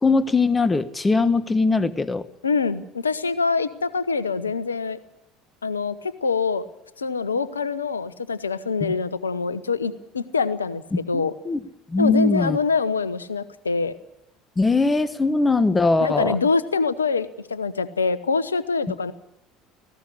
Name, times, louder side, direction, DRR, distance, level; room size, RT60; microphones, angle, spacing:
voice 1, 0.0-2.2 8.8-8.9 10.9-11.6 11.9-12.6 14.6-16.4, left 3 dB, 20° left, 14 dB, 1.5 m, -21 dB
voice 2, 2.4-5.0 5.6-6.7 7.0-10.8 11.1-11.3 12.0-13.9 16.0-19.1, left 4 dB, 85° left, 16 dB, 1.0 m, -25 dB
18.5 x 16.0 x 9.8 m, 0.86 s
figure-of-eight pair, 65°, 0 cm